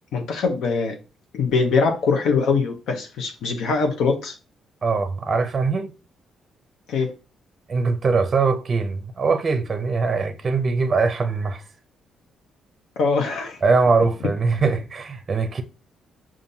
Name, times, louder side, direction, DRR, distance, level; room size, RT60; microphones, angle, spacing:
voice 1, 0.1-1.0 1.3-4.3 6.9-7.1 13.0-13.6, left 4 dB, 80° left, 0.7 m, -22 dB
voice 2, 4.8-5.9 7.7-11.6 13.6-15.6, right 4 dB, 40° right, 0.5 m, -22 dB
5.3 x 2.5 x 2.7 m
cardioid pair, 90°, 0 cm